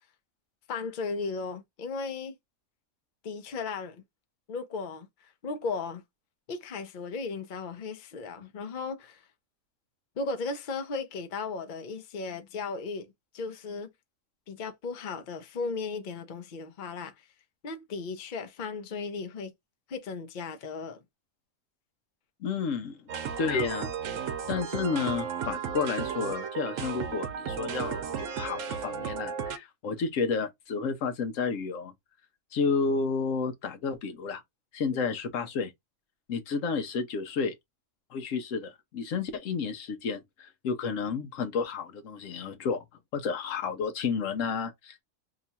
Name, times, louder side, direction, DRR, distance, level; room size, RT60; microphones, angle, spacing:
voice 1, 0.7-2.3 3.2-4.0 4.5-6.0 6.5-9.2 10.2-13.1 13.3-13.9 14.5-17.3 17.6-19.5 19.9-21.0, left 4 dB, 45° left, 0.7 m, -36 dB
voice 2, 22.4-23.0 23.4-31.9 32.5-34.4 34.7-35.7 36.3-37.5 38.1-42.8 43.1-45.0, left 5 dB, 75° left, 1.0 m, -31 dB
sound 1, 23.1-29.6, right 7 dB, 75° right, 1.0 m, -34 dB
2.9 x 2.3 x 4.1 m
omnidirectional pair, 1.4 m